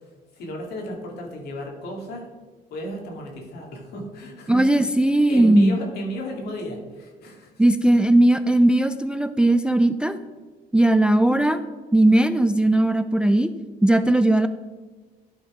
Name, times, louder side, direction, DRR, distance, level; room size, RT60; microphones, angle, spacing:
voice 1, 0.0-2.3 2.7-7.5, equal, 70° left, 1 dB, 2.3 m, -34 dB
voice 2, 4.5-5.8 7.6-10.2 10.7-11.6 11.9-13.5 13.8-14.5, right 1 dB, 5° right, 11 dB, 0.3 m, -18 dB
11.5 x 4.3 x 5.0 m, 1.4 s
cardioid pair, 110°, 17 cm